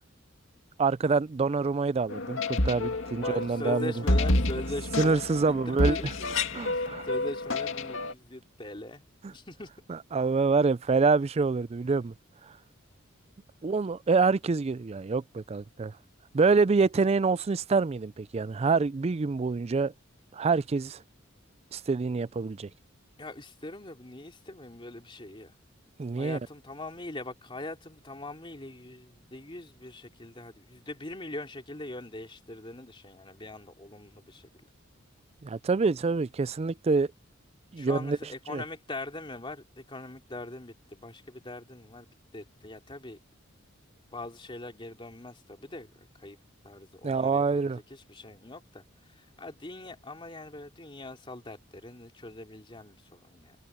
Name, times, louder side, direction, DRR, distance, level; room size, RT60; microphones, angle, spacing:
voice 1, 0.8-3.9 5.0-6.1 6.5-7.1 9.2-9.3 9.9-12.1 13.6-15.9 16.3-19.9 20.3-21.0 21.7-22.7 26.0-26.4 35.4-37.1 37.7-38.2 38.5-38.6 47.0-47.8, right 4 dB, 30° right, 0.4 m, -26 dB
sound 1, 2.1-8.1, left 2 dB, 70° left, 2.3 m, -29 dB
voice 2, 3.1-9.0 9.3-9.7 23.2-25.6 26.2-34.5 37.8-42.1 42.3-43.2 44.1-46.4 46.6-48.8 49.1-53.6, left 2 dB, 25° left, 3.2 m, -42 dB
head